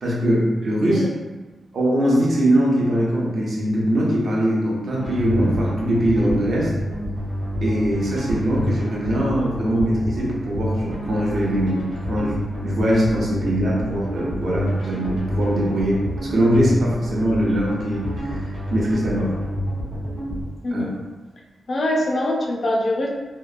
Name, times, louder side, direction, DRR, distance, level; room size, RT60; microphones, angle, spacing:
voice 1, 0.0-1.1 1.7-6.7 7.6-18.4 18.7-19.3 20.7-20.8, equal, 50° right, -4 dB, 0.6 m, -21 dB
sound 1, 5.0-20.4, equal, 70° right, 1.0 m, -28 dB
voice 2, 20.6-20.9 21.7-23.1, left 1 dB, 35° left, -1 dB, 0.3 m, -23 dB
2.8 x 2.1 x 2.4 m, 1.3 s
wide cardioid pair, 180°, 0 cm